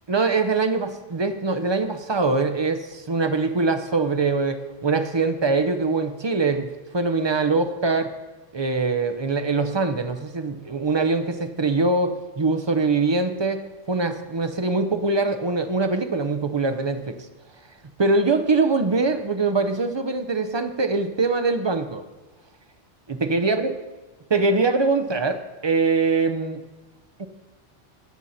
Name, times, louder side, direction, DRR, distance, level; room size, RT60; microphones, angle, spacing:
voice 1, 0.1-8.1 8.5-13.6 13.9-17.2 18.0-22.0 23.1-23.7 24.3-26.6 27.2-27.3, right 3 dB, 30° right, 8 dB, 0.5 m, -23 dB
16.5 x 6.3 x 4.2 m, 1.2 s
omnidirectional pair, 1.2 m